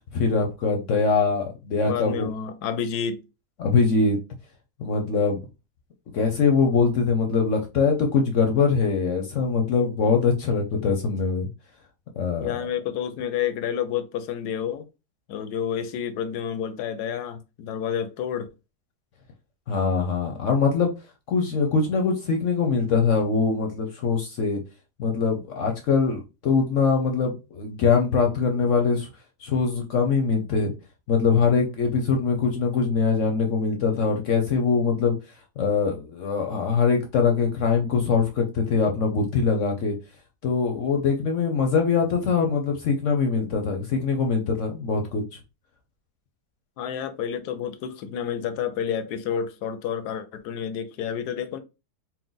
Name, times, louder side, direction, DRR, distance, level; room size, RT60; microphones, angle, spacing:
voice 1, 0.1-2.3 3.6-4.2 4.8-5.4 6.1-11.5 12.2-12.6 19.7-20.9 21.3-24.6 25.0-29.1 29.4-30.7 31.1-35.1 35.6-40.0 40.4-45.2, left 5 dB, 60° left, 0.9 m, -23 dB
voice 2, 1.9-3.2 12.4-14.9 15.3-18.5 46.8-51.6, left 8 dB, 80° left, 1.1 m, -29 dB
4.5 x 2.1 x 3.9 m
omnidirectional pair, 1.8 m